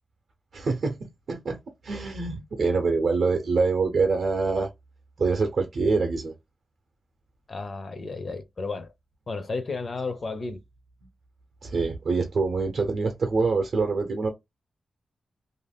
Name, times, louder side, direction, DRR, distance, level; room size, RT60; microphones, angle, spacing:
voice 1, 0.5-1.6 1.8-4.7 5.2-6.3 11.6-14.3, right 4 dB, 55° right, 0.6 m, -25 dB
voice 2, 7.5-8.9 9.3-10.6, left 3 dB, 35° left, 0.4 m, -33 dB
2.4 x 2.2 x 3.4 m
wide cardioid pair, 170°, 0 cm